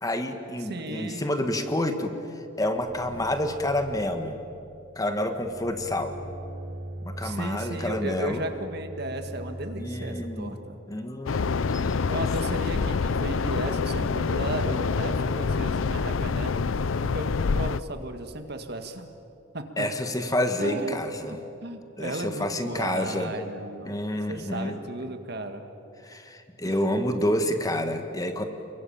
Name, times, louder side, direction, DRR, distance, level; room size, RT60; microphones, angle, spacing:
voice 1, 0.0-4.3 4.9-6.2 7.0-8.4 9.8-10.6 10.9-12.2 12.5-12.9 19.8-21.4 22.0-23.3 23.8-24.8 26.0-28.4, left 1 dB, 20° left, 6 dB, 1.6 m, -29 dB
voice 2, 0.6-1.3 7.2-10.8 12.1-16.6 17.0-19.1 19.5-19.9 20.6-21.0 21.2-24.0 24.3-25.6 26.6-26.8, right 1 dB, 55° right, 7 dB, 2.0 m, -35 dB
sound 1, 2.7-10.4 11.5-12.1 12.7-13.3 13.6-17.6, right 1 dB, 75° right, 5.7 m, -42 dB
sound 2, 11.3-17.8, left 4 dB, 80° left, 0.5 m, -26 dB
30.0 x 22.5 x 8.9 m, 2.7 s
head